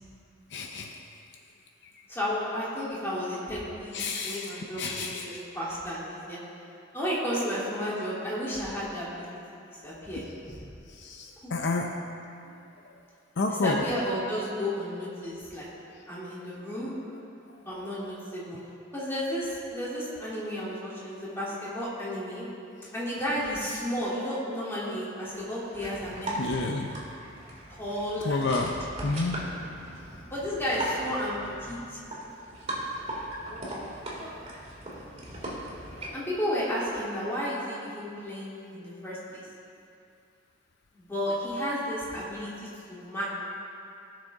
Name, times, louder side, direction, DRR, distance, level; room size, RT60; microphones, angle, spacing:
voice 1, 0.5-0.9 3.9-5.3 11.0-11.9 13.4-13.8 26.4-26.9 28.2-28.7 29.0-29.4, left 3 dB, 60° left, 2 dB, 0.6 m, -29 dB
voice 2, 2.1-6.4 6.9-9.2 9.8-10.2 11.4-11.7 13.5-15.7 16.1-17.0 17.6-18.6 18.9-22.4 22.9-26.8 27.8-28.6 30.3-31.3 31.7-32.0 36.1-39.4 40.9-43.3, equal, 15° left, -9 dB, 2.9 m, -33 dB
sound 1, 25.7-36.1, right 1 dB, 30° right, 2.4 m, -38 dB
18.0 x 6.5 x 3.6 m, 2.6 s
head